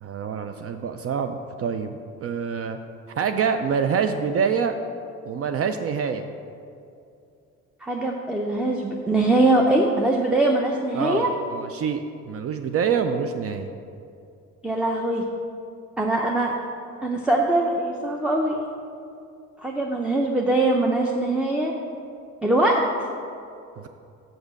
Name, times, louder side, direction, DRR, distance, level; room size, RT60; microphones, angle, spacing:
voice 1, 0.0-2.8 3.2-4.8 5.3-6.2 10.9-13.7, right 6 dB, 50° right, 8 dB, 0.5 m, -26 dB
voice 2, 7.8-11.3 14.6-15.3 16.0-16.5 17.0-18.6 19.6-21.7 22.4-22.8, right 2 dB, 5° right, 0 dB, 0.6 m, -22 dB
6.1 x 5.1 x 6.3 m, 2.5 s
cardioid pair, 90°, 30 cm